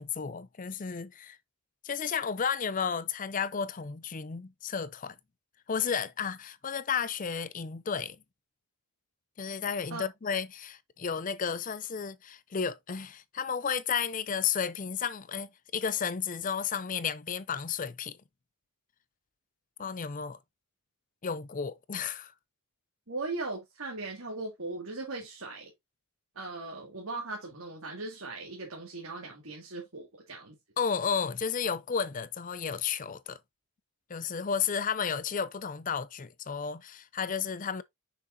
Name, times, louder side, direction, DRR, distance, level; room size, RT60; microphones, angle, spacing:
voice 1, 0.0-1.4 1.8-5.2 5.7-8.2 9.4-18.2 19.8-20.4 21.2-22.3 30.8-33.4 34.1-37.8, left 6 dB, 35° left, 0.5 m, -32 dB
voice 2, 23.1-25.7 26.4-30.6, right 3 dB, 70° right, 2.2 m, -38 dB
6.7 x 6.0 x 2.7 m
head